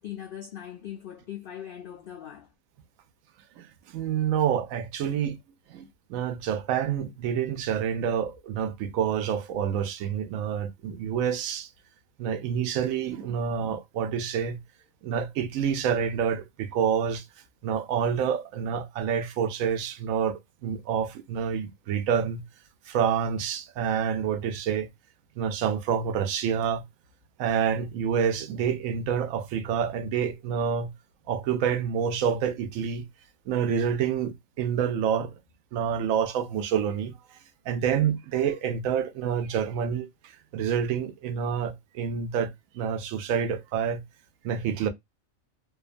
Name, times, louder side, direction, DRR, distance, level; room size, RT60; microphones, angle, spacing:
voice 1, 0.0-2.5, left 10 dB, 75° left, 0.5 m, -40 dB
voice 2, 3.9-5.4 5.7-5.8 6.1-11.7 12.2-14.6 15.0-17.2 17.6-22.4 22.9-24.9 25.4-26.8 27.4-30.9 31.3-33.0 33.5-35.3 35.7-37.1 37.7-40.1 40.5-42.5 42.8-44.0 44.4-44.9, right 8 dB, 80° right, 1.0 m, -27 dB
2.6 x 2.3 x 2.4 m
omnidirectional pair, 1.4 m